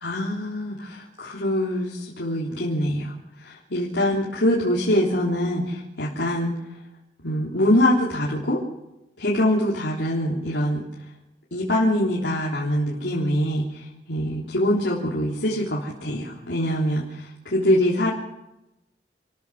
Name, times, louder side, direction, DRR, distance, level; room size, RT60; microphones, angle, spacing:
voice 1, 0.0-3.1 3.4-6.5 7.2-8.6 9.2-10.9 11.5-18.1, left 1 dB, 75° left, -5 dB, 3.6 m, -24 dB
28.0 x 14.5 x 6.5 m, 0.93 s
head